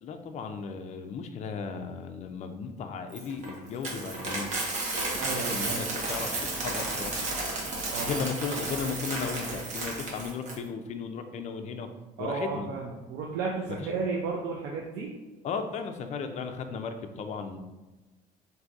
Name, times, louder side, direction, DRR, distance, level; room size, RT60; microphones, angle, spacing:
voice 1, 0.0-4.5 5.1-7.2 8.0-11.9 12.2-12.7 15.4-17.6, left 5 dB, 45° left, 6 dB, 0.4 m, -35 dB
Coin (dropping), 3.1-10.6, right 2 dB, 45° right, 0.9 m, -33 dB
voice 2, 5.2-6.0 7.9-8.2 12.2-15.1, right 4 dB, 90° right, -1 dB, 0.4 m, -33 dB
3.8 x 2.6 x 2.4 m, 1.1 s
cardioid pair, 110°, 17 cm